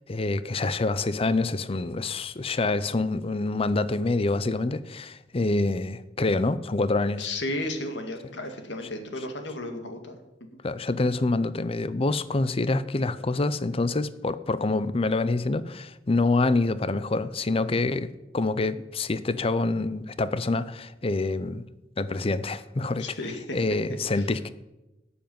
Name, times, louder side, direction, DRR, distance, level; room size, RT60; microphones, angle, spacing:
voice 1, 0.0-7.3 10.6-21.6 22.0-23.0 23.5-24.5, left 2 dB, 30° left, 0.6 m, -26 dB
voice 2, 7.2-10.1 23.0-23.6 24.1-24.2, left 2 dB, 65° left, 2.0 m, -33 dB
12.5 x 7.1 x 9.3 m
head